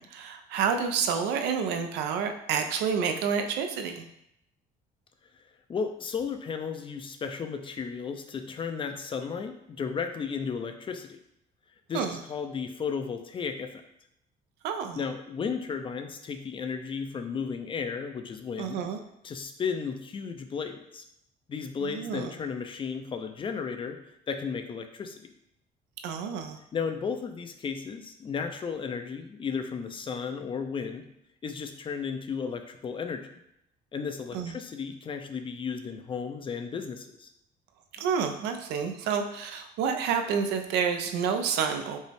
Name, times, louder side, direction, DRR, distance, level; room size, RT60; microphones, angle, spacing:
voice 1, 0.0-4.0 11.9-12.2 14.6-15.0 18.6-19.0 21.8-22.3 26.0-26.6 34.3-34.5 37.9-42.0, right 6 dB, 85° right, 6 dB, 0.5 m, -29 dB
voice 2, 5.7-11.2 11.9-13.8 15.0-18.8 19.2-21.0 21.5-24.0 24.3-25.3 26.7-31.1 31.4-33.3 33.9-37.3, left 6 dB, 30° left, 7 dB, 0.4 m, -34 dB
5.3 x 2.0 x 3.3 m, 0.77 s
cardioid pair, 110°, 17 cm